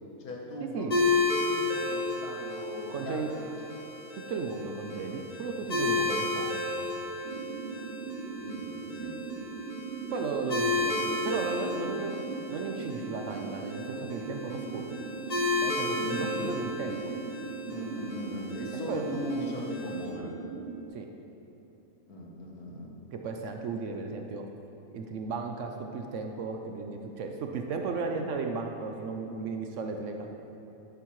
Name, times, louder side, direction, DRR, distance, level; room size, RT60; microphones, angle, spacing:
voice 1, 0.2-3.5 7.7-7.9 8.4-9.2 16.0-16.7 17.7-20.4 22.1-22.9, equal, 80° left, -1 dB, 1.7 m, -39 dB
sound 1, 0.9-20.1, left 3 dB, 30° left, 1.0 m, -33 dB
voice 2, 2.9-3.3 4.3-6.9 10.1-12.1 12.5-15.0 15.6-17.1 18.9-19.0 20.9-21.1 23.1-24.4 24.9-30.3, right 4 dB, 65° right, 4 dB, 0.9 m, -35 dB
sound 2, 7.2-20.9, right 5 dB, 90° right, 0.5 m, -39 dB
10.5 x 8.3 x 3.1 m, 2.9 s
omnidirectional pair, 1.5 m